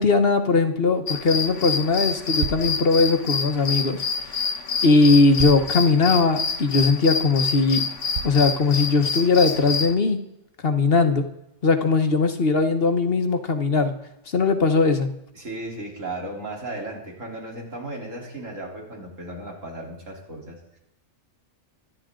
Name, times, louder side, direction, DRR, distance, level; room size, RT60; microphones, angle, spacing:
voice 1, 0.0-4.0 4.8-7.9 8.2-10.2 10.6-11.2 11.6-13.9 14.3-15.1, left 3 dB, 50° left, 8 dB, 1.4 m, -19 dB
sound 1, 1.1-9.9, left 5 dB, 70° left, 1.4 m, -27 dB
sound 2, 2.4-2.7 4.3-4.4 5.4-5.7 6.3-6.4 7.0-7.1 8.1-8.5, right 8 dB, 65° right, 1.2 m, -31 dB
voice 2, 15.3-20.8, right 2 dB, 90° right, -1 dB, 4.1 m, -35 dB
24.5 x 11.0 x 3.8 m, 0.85 s
omnidirectional pair, 1.3 m